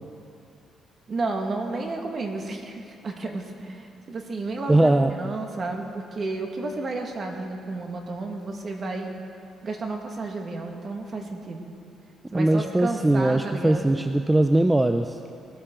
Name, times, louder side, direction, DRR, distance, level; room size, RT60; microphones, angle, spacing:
voice 1, 1.1-9.1 9.6-11.7 12.3-13.9, right 3 dB, 45° right, 3 dB, 1.7 m, -32 dB
voice 2, 4.7-5.1 12.3-15.2, right 1 dB, 10° right, 7 dB, 0.5 m, -20 dB
19.5 x 12.5 x 3.8 m, 2.5 s
cardioid pair, 90°, 0 cm